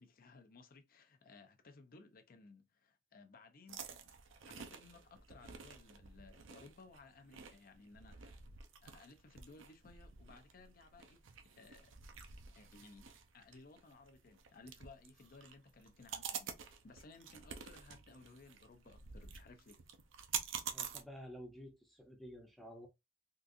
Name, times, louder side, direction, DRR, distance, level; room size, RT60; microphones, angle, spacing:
voice 1, 0.0-4.1 4.5-8.4 8.8-12.0 12.5-19.8, left 3 dB, 45° left, 0.5 m, -59 dB
sound 1, 3.7-21.0, right 7 dB, 75° right, 0.6 m, -49 dB
voice 2, 20.7-22.9, equal, ahead, 0.6 m, -51 dB
3.7 x 2.4 x 2.6 m
head